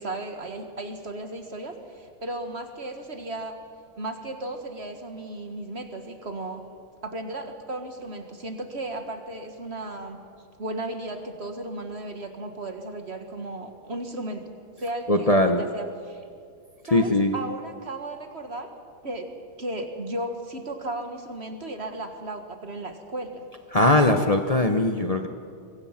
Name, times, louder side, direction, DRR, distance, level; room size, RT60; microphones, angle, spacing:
voice 1, 0.0-3.6 4.0-6.6 7.0-10.2 10.6-14.5 14.8-16.2 16.9-18.7 19.0-23.4, right 1 dB, 35° right, 5 dB, 1.7 m, -35 dB
voice 2, 15.1-15.6 16.9-17.3 23.7-25.3, left 1 dB, 45° left, 5 dB, 0.5 m, -20 dB
23.5 x 23.5 x 5.9 m, 2.3 s
omnidirectional pair, 2.3 m